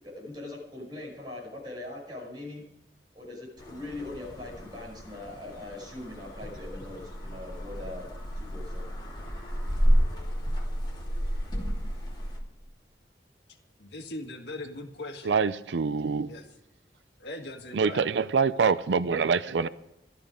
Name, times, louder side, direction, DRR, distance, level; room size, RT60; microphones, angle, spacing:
voice 1, 0.0-2.6 3.1-8.1 8.4-8.8, left 2 dB, 25° right, -3 dB, 5.7 m, -41 dB
sound 1, 3.6-12.4, equal, 25° left, 2.9 m, -31 dB
voice 2, 13.8-15.4 16.2-16.4 17.2-18.0, left 2 dB, 70° left, 3 dB, 1.8 m, -40 dB
voice 3, 15.2-16.4 17.7-19.7, right 5 dB, 85° right, 15 dB, 0.5 m, -25 dB
15.0 x 12.5 x 5.1 m, 0.82 s
head